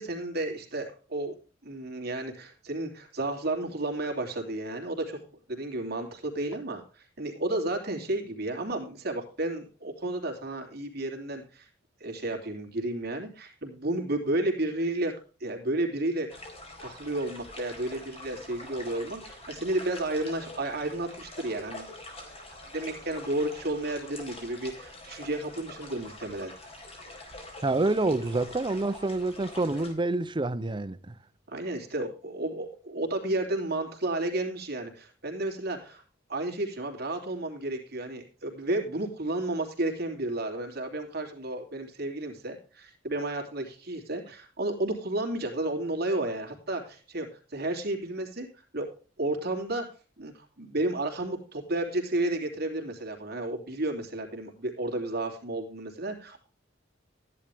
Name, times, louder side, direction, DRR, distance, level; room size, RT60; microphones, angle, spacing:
voice 1, 0.0-1.3 1.6-5.2 5.5-11.7 12.0-15.1 15.4-16.4 16.8-21.9 22.7-26.5 31.5-36.0 36.3-49.9 50.2-56.5, right 2 dB, 55° right, 3.0 m, -32 dB
sound 1, 16.3-29.9, left 1 dB, 35° left, 4.2 m, -45 dB
voice 2, 27.6-31.2, right 2 dB, 25° right, 0.6 m, -27 dB
14.0 x 10.5 x 3.5 m
head